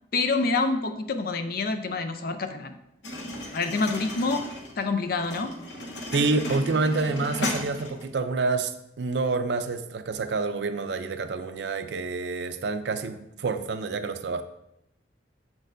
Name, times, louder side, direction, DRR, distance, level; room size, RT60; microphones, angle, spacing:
voice 1, 0.1-2.8 3.5-4.5 4.8-5.6, left 3 dB, 55° left, 8 dB, 0.6 m, -27 dB
sound 1, 3.0-8.1, left 1 dB, 75° left, 0.9 m, -35 dB
voice 2, 6.1-14.4, right 3 dB, 70° right, 9 dB, 0.5 m, -28 dB
7.3 x 6.2 x 2.6 m, 0.83 s
head